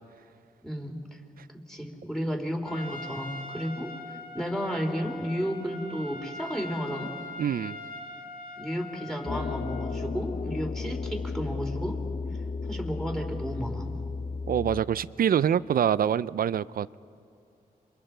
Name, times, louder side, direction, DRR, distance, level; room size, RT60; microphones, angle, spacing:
voice 1, 0.6-1.2 1.7-3.9 4.3-7.1 8.6-12.0 12.7-13.9, equal, 5° left, 1 dB, 3.2 m, -32 dB
Trumpet, 2.7-10.0, left 2 dB, 70° left, 1.6 m, -42 dB
voice 2, 7.4-7.8 14.5-17.0, right 9 dB, 70° right, 18 dB, 0.4 m, -25 dB
sound 1, 9.3-14.8, left 4 dB, 50° left, 0.8 m, -34 dB
27.5 x 23.0 x 4.4 m, 2.5 s
cardioid pair, 65°, 16 cm